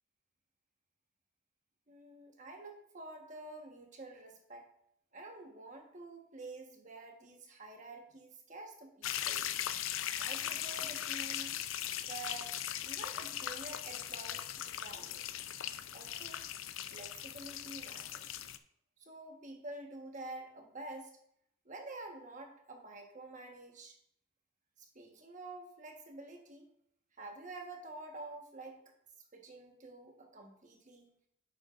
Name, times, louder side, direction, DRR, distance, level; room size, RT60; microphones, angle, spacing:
voice 1, 1.9-4.7 5.1-9.5 10.2-11.5 12.1-12.5 12.8-15.2 15.9-16.5 16.9-18.4 19.0-21.1 21.6-24.0 24.8-26.7 27.2-28.8 29.3-31.1, right 2 dB, 40° right, 2 dB, 1.3 m, -49 dB
sound 1, 9.0-18.6, left 11 dB, 85° left, 0.5 m, -39 dB
9.9 x 7.4 x 2.5 m, 0.71 s
head